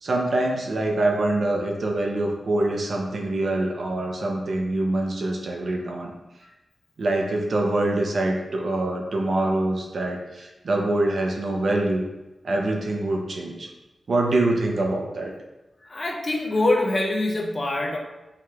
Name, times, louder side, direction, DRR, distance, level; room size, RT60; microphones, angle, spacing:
voice 1, 0.0-6.1 7.0-12.0 12.4-13.7 14.1-15.3, right 2 dB, 55° right, 1 dB, 0.5 m, -25 dB
voice 2, 15.9-18.0, left 2 dB, 30° left, 0 dB, 0.5 m, -24 dB
4.7 x 3.0 x 2.3 m, 1.0 s
wide cardioid pair, 165°, 0 cm